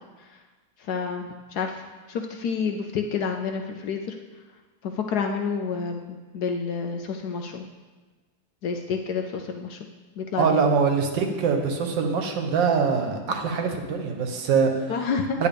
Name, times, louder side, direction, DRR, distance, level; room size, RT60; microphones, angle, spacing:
voice 1, 0.8-4.1 4.8-7.7 8.6-9.8 10.2-10.7 14.9-15.4, left 5 dB, 70° left, 4 dB, 1.0 m, -29 dB
voice 2, 10.4-14.7 15.4-15.5, right 5 dB, 75° right, 4 dB, 1.6 m, -23 dB
9.9 x 9.0 x 3.5 m, 1.3 s
omnidirectional pair, 2.1 m